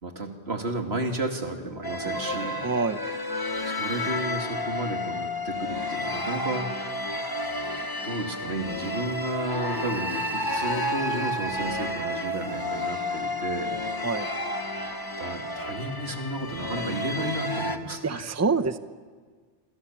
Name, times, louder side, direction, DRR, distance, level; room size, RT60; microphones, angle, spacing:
voice 1, 0.0-2.7 3.6-6.7 8.0-13.8 15.2-18.3, right 2 dB, 85° right, 3 dB, 2.8 m, -32 dB
sound 1, 1.8-17.8, left 1 dB, 20° left, 1.4 m, -31 dB
voice 2, 2.6-3.0 14.0-14.3 18.0-18.8, right 4 dB, 20° right, 11 dB, 0.8 m, -26 dB
27.5 x 26.5 x 7.4 m, 1.6 s
omnidirectional pair, 1.0 m